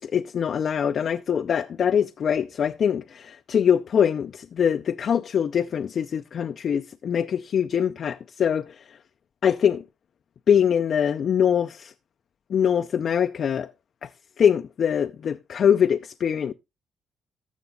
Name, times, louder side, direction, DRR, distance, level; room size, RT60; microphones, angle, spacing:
voice 1, 0.0-8.8 9.4-9.8 10.5-11.9 12.5-13.7 14.0-14.1 14.4-16.5, left 8 dB, 55° left, 0.5 m, -23 dB
14.5 x 6.1 x 3.8 m
cardioid pair, 90°, 0 cm